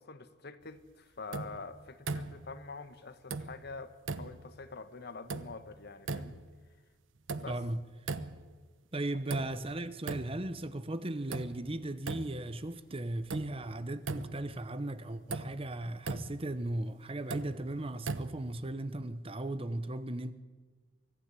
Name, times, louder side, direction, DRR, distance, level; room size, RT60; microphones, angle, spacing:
voice 1, 0.0-6.4 7.4-7.6, left 4 dB, 55° left, 1.3 m, -46 dB
sound 1, 1.3-1.7 2.1-2.6 3.3-3.7 4.1-4.5 5.3-5.7 6.1-6.5 7.3-7.7 8.1-8.6 9.3-9.8 10.1-10.5 11.3-11.7 12.1-12.6 13.3-13.7 14.0-14.6 15.3-15.6 16.0-16.5 17.3-17.7 18.0-18.6, right 3 dB, 80° right, 1.0 m, -39 dB
voice 2, 7.5-7.8 8.9-20.3, right 1 dB, 30° right, 0.9 m, -37 dB
24.5 x 15.5 x 8.3 m
head